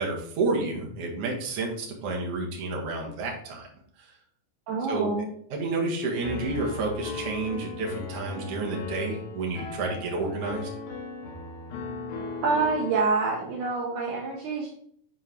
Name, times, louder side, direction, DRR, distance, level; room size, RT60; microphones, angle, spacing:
voice 1, 0.0-3.7 4.9-5.1 5.5-10.7, right 3 dB, 50° right, 0 dB, 1.9 m, -30 dB
voice 2, 4.7-5.3 12.4-14.7, right 4 dB, 75° right, -1 dB, 1.8 m, -26 dB
Piano, 6.2-13.1, left 4 dB, 75° left, 3.1 m, -37 dB
9.8 x 4.7 x 3.5 m, 0.67 s
omnidirectional pair, 5.0 m